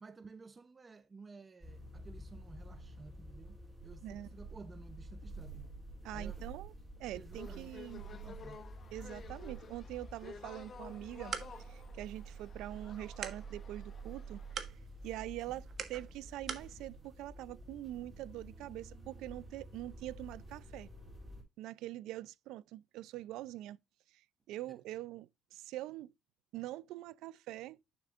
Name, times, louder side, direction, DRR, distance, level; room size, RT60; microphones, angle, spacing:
voice 1, 0.0-5.7 6.1-6.4 7.1-8.6 15.5-15.6 24.7-24.8, right 4 dB, 25° right, 0.7 m, -54 dB
sound 1, 1.6-21.4, right 2 dB, 5° right, 3.6 m, -49 dB
voice 2, 6.0-6.7 7.0-8.0 8.9-14.7 15.0-20.9 21.6-23.8 24.1-26.1 26.5-28.0, right 15 dB, 90° right, 0.5 m, -44 dB
sound 2, 7.3-14.5, left 6 dB, 35° left, 1.0 m, -53 dB
sound 3, 10.9-16.7, right 7 dB, 45° right, 1.5 m, -47 dB
11.0 x 6.8 x 2.5 m
cardioid pair, 140°, 0 cm